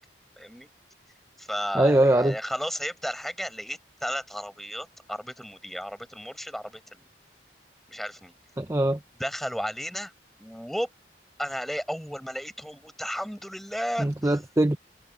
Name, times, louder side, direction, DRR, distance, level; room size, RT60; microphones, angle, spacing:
voice 1, 0.4-0.7 1.4-7.0 7.9-8.3 9.2-10.1 10.4-10.9 11.4-14.4, equal, ahead, 7.6 m, -34 dB
voice 2, 1.7-2.3 8.6-9.0 14.0-14.8, right 1 dB, 15° right, 0.5 m, -22 dB
head